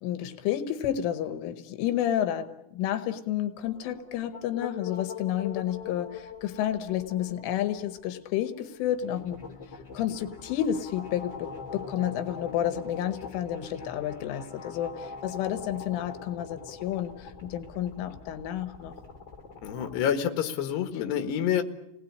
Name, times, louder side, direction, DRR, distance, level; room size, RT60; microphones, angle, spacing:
voice 1, 0.0-9.4 9.9-19.0, left 11 dB, 85° left, 9 dB, 3.7 m, -30 dB
another noize, 3.6-20.1, left 5 dB, 30° left, 3.2 m, -43 dB
voice 2, 19.6-21.6, left 9 dB, 65° left, 6 dB, 3.7 m, -27 dB
30.0 x 19.5 x 8.8 m, 0.87 s
omnidirectional pair, 5.5 m